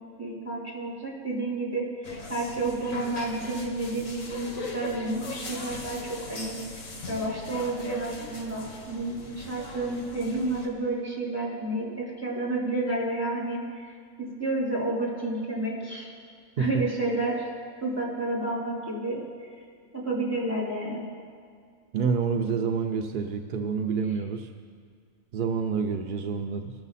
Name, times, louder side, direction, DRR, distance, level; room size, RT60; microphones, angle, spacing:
voice 1, 0.2-1.9 2.3-6.6 7.1-13.9 14.2-16.1 16.6-17.5 17.8-19.2 19.9-21.0, right 2 dB, 20° right, -6 dB, 3.2 m, -30 dB
sound 1, 2.0-10.7, left 3 dB, 75° left, 1.6 m, -40 dB
voice 2, 21.9-24.5 25.3-26.7, right 6 dB, 65° right, 4 dB, 0.5 m, -28 dB
20.0 x 6.9 x 4.1 m, 2.1 s
omnidirectional pair, 1.4 m